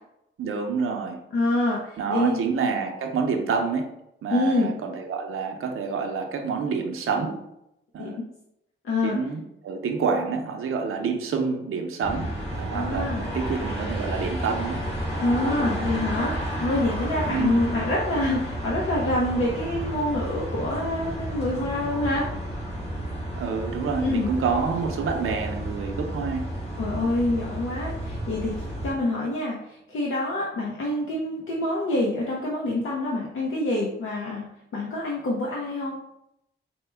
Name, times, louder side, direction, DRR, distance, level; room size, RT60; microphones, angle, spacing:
voice 1, 0.4-1.2 2.0-3.9 4.2-7.4 7.9-8.2 9.0-14.8 17.2-17.6 23.4-26.6, right 5 dB, 80° right, 3 dB, 0.6 m, -28 dB
voice 2, 1.3-2.4 4.3-4.8 8.0-8.3 8.8-9.2 12.7-13.3 15.2-22.3 24.0-24.3 26.8-34.4 34.7-36.0, left 2 dB, 75° left, -3 dB, 0.7 m, -26 dB
sound 1, 12.0-28.9, right 1 dB, 30° left, 1.4 m, -31 dB
4.4 x 2.1 x 3.3 m, 0.81 s
wide cardioid pair, 165°, 21 cm